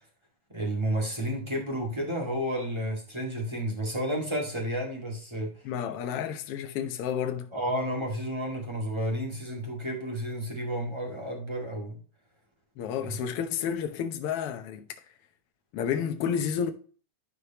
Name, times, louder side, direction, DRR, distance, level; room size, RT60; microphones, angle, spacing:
voice 1, 0.5-5.5 7.5-12.0, equal, 10° right, 1.5 m, -31 dB
voice 2, 5.6-7.5 12.8-14.9 15.7-16.7, left 8 dB, 70° left, 1.4 m, -30 dB
11.0 x 4.9 x 2.9 m
omnidirectional pair, 3.6 m